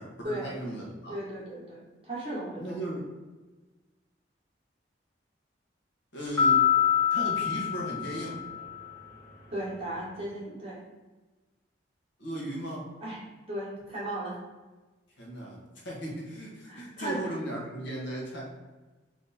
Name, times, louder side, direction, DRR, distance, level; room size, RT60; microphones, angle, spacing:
voice 1, 0.0-1.1 2.6-3.1 6.1-6.7 7.1-8.4 12.2-12.9 15.2-18.4, right 1 dB, 80° left, -3 dB, 1.4 m, -36 dB
voice 2, 1.1-2.8 9.5-10.9 13.0-14.4 16.7-17.4, right 1 dB, 30° right, -6 dB, 1.4 m, -36 dB
sound 1, 6.4-8.9, left 8 dB, 15° left, 1.1 m, -25 dB
3.6 x 3.2 x 4.2 m, 1.2 s
head